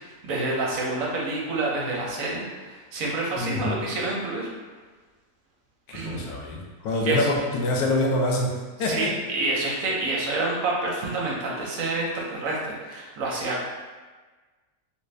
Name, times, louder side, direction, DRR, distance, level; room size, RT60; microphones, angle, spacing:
voice 1, 0.0-4.5 5.9-6.2 7.0-7.3 8.9-13.7, right 2 dB, 65° right, -3 dB, 1.0 m, -28 dB
voice 2, 3.4-3.7 5.9-8.5 8.8-9.1, left 2 dB, 80° left, -1 dB, 1.1 m, -25 dB
3.4 x 2.5 x 3.1 m, 1.3 s
omnidirectional pair, 1.6 m